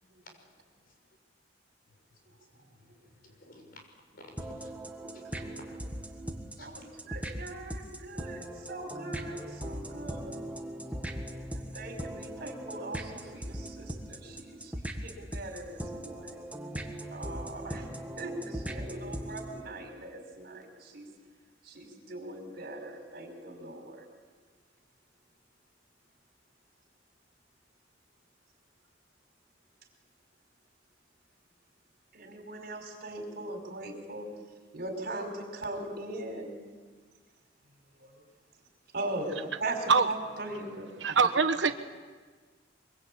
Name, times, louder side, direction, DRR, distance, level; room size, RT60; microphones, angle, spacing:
voice 1, 3.0-3.8 4.1-4.7 5.1-5.4 6.6-6.7, left 1 dB, 55° left, 3 dB, 6.2 m, -53 dB
sound 1, 4.4-19.6, right 1 dB, 10° right, 1.8 m, -39 dB
voice 2, 5.0-5.5 6.6-10.4 11.5-16.4 17.1-17.9 18.2-21.1 21.7-24.0 32.1-34.3 34.7-36.5 38.0-38.1 38.9-40.9, right 2 dB, 55° right, 3 dB, 5.2 m, -40 dB
voice 3, 41.0-41.7, right 5 dB, 75° right, 9 dB, 1.1 m, -23 dB
23.5 x 23.5 x 8.8 m, 1.5 s
head